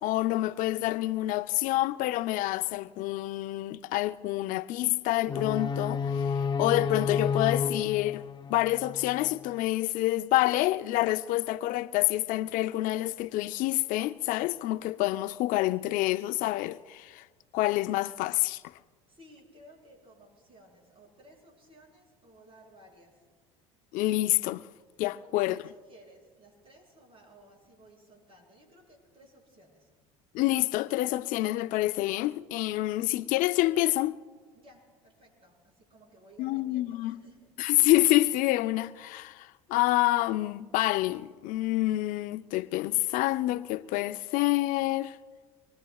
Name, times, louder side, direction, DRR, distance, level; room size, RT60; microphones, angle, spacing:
voice 1, 0.0-8.2 8.5-17.2 17.5-18.6 23.9-24.6 25.0-25.6 30.3-34.2 36.4-37.2 37.6-45.2, left 17 dB, 60° left, 0.5 m, -27 dB
sound 1, 5.3-9.3, left 5 dB, 30° left, 0.7 m, -31 dB
voice 2, 19.1-23.2 25.2-29.9 34.5-37.7, right 1 dB, 35° right, 6.8 m, -57 dB
25.0 x 22.0 x 2.4 m
hypercardioid pair, 75°, 16 cm